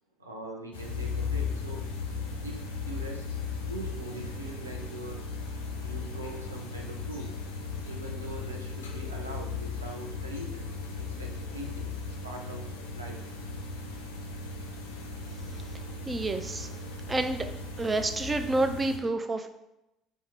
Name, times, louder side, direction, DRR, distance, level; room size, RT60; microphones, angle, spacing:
voice 1, 0.2-1.8 2.4-3.3 3.7-5.2 5.8-7.3 7.8-10.7 11.1-11.9 12.2-13.3, right 1 dB, 85° right, 0 dB, 0.4 m, -42 dB
sound 1, 0.7-19.0, left 4 dB, 75° left, 0.4 m, -37 dB
voice 2, 16.1-16.7 17.1-17.5 17.8-19.5, right 2 dB, 20° right, 7 dB, 0.3 m, -28 dB
2.8 x 2.2 x 4.1 m, 0.89 s
figure-of-eight pair, 55°, 0 cm